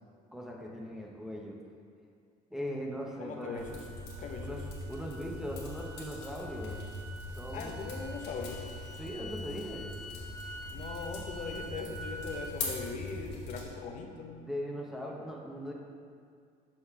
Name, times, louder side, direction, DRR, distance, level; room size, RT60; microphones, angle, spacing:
voice 1, 0.3-1.6 2.5-3.8 4.4-4.6 4.9-6.8 7.4-7.9 9.0-9.9 14.4-15.7, equal, ahead, -2 dB, 0.7 m, -39 dB
voice 2, 3.2-3.8 4.2-4.6 7.5-8.6 10.7-14.4, left 4 dB, 45° left, 2 dB, 0.6 m, -40 dB
sound 1, 3.4-12.5, right 1 dB, 45° right, 1.1 m, -48 dB
sound 2, 3.5-13.7, left 2 dB, 90° left, 1.2 m, -42 dB
5.6 x 3.1 x 5.6 m, 2.2 s
cardioid pair, 110°, 17 cm